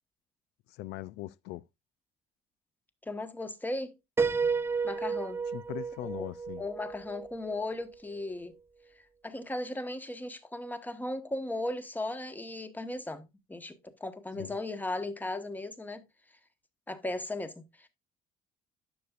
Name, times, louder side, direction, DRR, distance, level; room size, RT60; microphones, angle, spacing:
voice 1, 0.7-1.7 5.5-6.6 14.3-14.5, left 16 dB, 85° left, 0.4 m, -40 dB
voice 2, 3.1-3.9 4.8-5.4 6.2-6.3 6.6-8.5 9.2-16.0 16.9-17.9, left 2 dB, 10° left, 1.2 m, -36 dB
Piano, 4.2-7.9, right 5 dB, 15° right, 0.4 m, -32 dB
11.0 x 6.9 x 2.4 m
cardioid pair, 110°, 17 cm